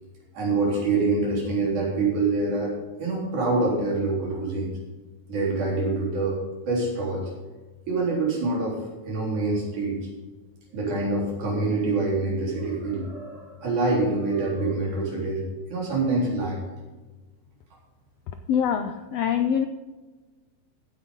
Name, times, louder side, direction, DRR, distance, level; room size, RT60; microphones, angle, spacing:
voice 1, 0.3-4.7 5.3-7.3 7.9-8.8 9.1-10.0 10.7-16.6, right 3 dB, 75° right, -3 dB, 5.2 m, -26 dB
voice 2, 18.5-19.7, left 8 dB, 80° left, 8 dB, 1.4 m, -24 dB
15.5 x 9.5 x 3.8 m, 1.2 s
omnidirectional pair, 3.6 m